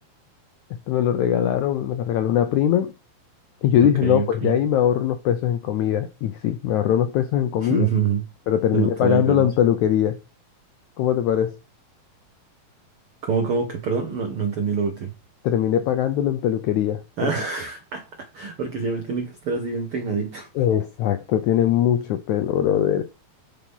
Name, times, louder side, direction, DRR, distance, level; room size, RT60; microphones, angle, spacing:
voice 1, 0.7-2.9 3.6-7.9 8.5-10.2 11.0-11.6 15.4-17.3 20.6-23.1, left 10 dB, 80° left, 1.7 m, -21 dB
voice 2, 3.8-4.5 7.6-8.2 8.7-9.5 13.2-15.1 17.2-20.5, right 5 dB, 75° right, 1.2 m, -26 dB
7.3 x 7.1 x 5.5 m
omnidirectional pair, 4.2 m